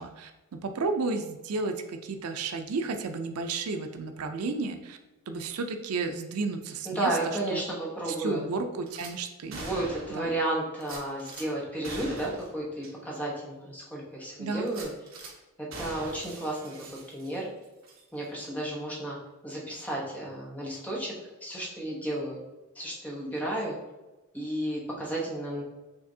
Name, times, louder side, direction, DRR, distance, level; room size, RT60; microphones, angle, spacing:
voice 1, 0.0-5.0 5.3-7.6 8.2-9.7 10.1-10.4 14.4-14.7, right 3 dB, 80° right, 6 dB, 0.5 m, -32 dB
voice 2, 6.8-8.4 9.6-14.9 15.6-17.5 18.1-19.2 19.4-21.1 21.4-22.4 22.7-23.8 24.3-25.6, right 1 dB, 5° left, -4 dB, 0.9 m, -32 dB
Gunshot gunfire / Glass, 8.9-9.1 9.5-10.3 10.8-11.5 11.8-12.5 12.8-12.9 13.4-13.5 14.7-15.3 15.7-17.5 17.8-18.0, right 2 dB, 65° right, 1.1 m, -42 dB
6.0 x 3.3 x 2.7 m, 1.1 s
head